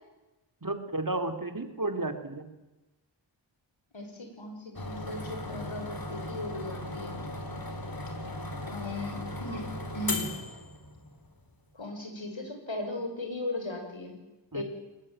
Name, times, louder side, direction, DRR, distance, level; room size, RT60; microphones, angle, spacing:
voice 1, 0.6-2.5 14.5-14.6, right 2 dB, 45° right, 8 dB, 3.1 m, -32 dB
voice 2, 3.9-7.2 8.7-10.3 11.7-14.2 14.5-14.6, left 2 dB, 75° left, 4 dB, 6.5 m, -37 dB
sound 1, 4.7-11.3, left 1 dB, 45° left, 3.8 m, -37 dB
23.5 x 20.0 x 8.9 m, 1.1 s
wide cardioid pair, 50°, 47 cm